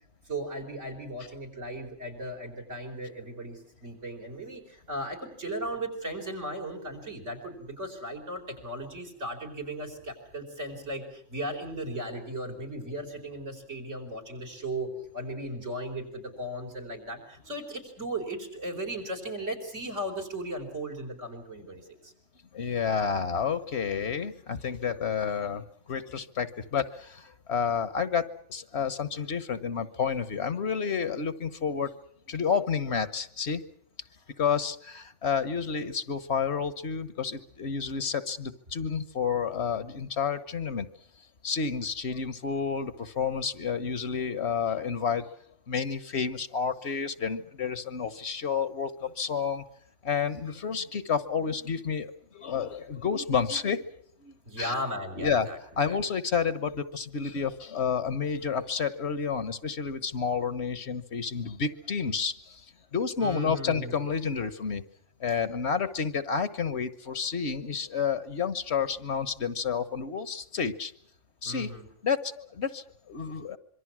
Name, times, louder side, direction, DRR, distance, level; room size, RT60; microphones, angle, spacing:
voice 1, 0.2-14.9 15.1-22.1 54.4-55.6 55.9-56.0 63.2-64.0 71.4-71.9, right 1 dB, 75° right, 7 dB, 5.1 m, -36 dB
voice 2, 22.5-31.9 32.3-33.6 34.4-40.9 41.4-45.3 45.7-49.6 50.0-53.9 54.2-54.8 55.2-55.5 55.8-62.6 62.9-64.8 65.2-70.9 71.4-71.7 72.0-73.6, left 6 dB, 60° left, 14 dB, 1.4 m, -30 dB
26.0 x 23.5 x 6.2 m, 0.62 s
omnidirectional pair, 1.3 m